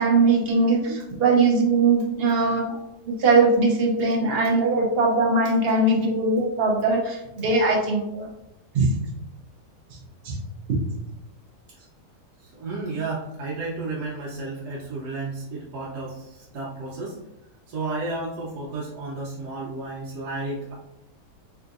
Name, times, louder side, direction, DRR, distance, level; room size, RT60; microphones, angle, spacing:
voice 1, 0.0-2.8 3.2-8.3 8.7-8.9 10.3-10.4, right 3 dB, 60° right, 0 dB, 0.6 m, -20 dB
voice 2, 12.4-17.2 17.7-20.7, right 3 dB, 80° right, -5 dB, 1.2 m, -32 dB
3.6 x 2.6 x 2.4 m, 0.88 s
omnidirectional pair, 1.8 m